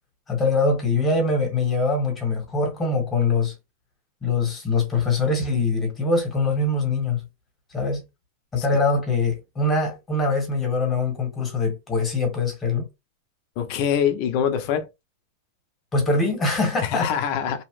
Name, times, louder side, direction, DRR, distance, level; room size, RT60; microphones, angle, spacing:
voice 1, 0.3-3.5 4.2-7.2 7.7-8.0 8.5-12.9 15.9-17.1, left 3 dB, 15° left, 1.3 m, -23 dB
voice 2, 13.6-14.9 16.8-17.6, left 8 dB, 45° left, 0.6 m, -24 dB
2.8 x 2.1 x 3.1 m
supercardioid pair, 155°, 0 cm